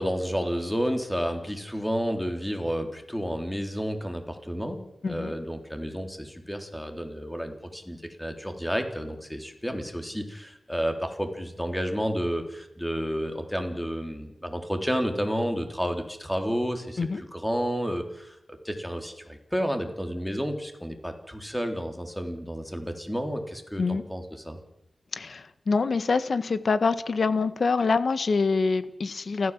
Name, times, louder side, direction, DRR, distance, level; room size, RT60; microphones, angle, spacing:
voice 1, 0.0-4.8 5.1-18.4 18.6-24.6, equal, 5° left, 5 dB, 3.7 m, -31 dB
voice 2, 5.0-5.3 17.0-17.2 23.8-24.0 25.1-29.5, left 4 dB, 55° left, 12 dB, 1.7 m, -25 dB
29.0 x 14.5 x 7.6 m, 0.80 s
wide cardioid pair, 120°, 0 cm